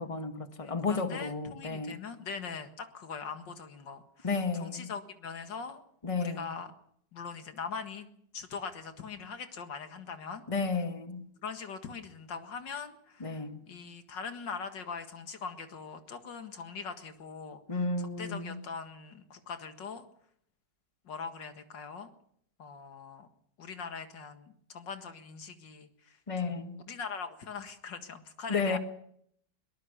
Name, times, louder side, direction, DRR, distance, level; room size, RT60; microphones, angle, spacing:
voice 1, 0.0-2.0 4.2-4.9 6.0-6.5 10.5-11.2 13.2-13.6 17.7-18.6 26.3-26.8 28.5-28.8, left 4 dB, 20° left, 1.6 m, -32 dB
voice 2, 0.6-5.8 6.2-6.7 7.1-8.1 8.3-10.4 11.4-17.6 18.0-20.0 21.0-22.1 22.6-23.3 23.6-26.6 26.9-28.8, left 5 dB, 85° left, 2.5 m, -42 dB
23.0 x 19.0 x 6.7 m
omnidirectional pair, 1.9 m